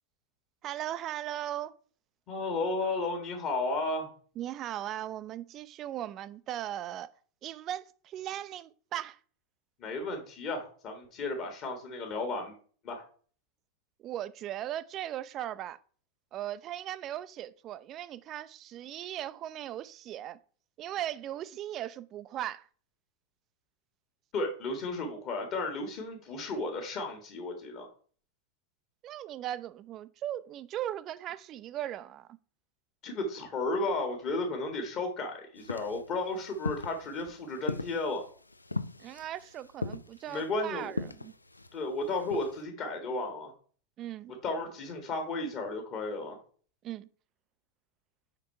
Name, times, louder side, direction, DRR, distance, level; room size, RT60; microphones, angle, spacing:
voice 1, 0.6-1.7 4.4-7.1 7.4-9.2 14.0-15.8 16.3-20.4 20.8-22.7 29.0-32.4 39.0-41.3 44.0-44.3 46.8-47.1, right 12 dB, 35° right, 0.4 m, -38 dB
voice 2, 2.3-4.1 9.8-12.5 12.8-13.0 24.3-27.9 33.0-38.2 40.3-40.9 41.7-43.5 44.4-46.4, left 2 dB, 35° left, 1.7 m, -33 dB
sound 1, 35.6-42.6, left 2 dB, 80° left, 0.4 m, -39 dB
6.0 x 5.4 x 4.5 m
figure-of-eight pair, 90°, 0 cm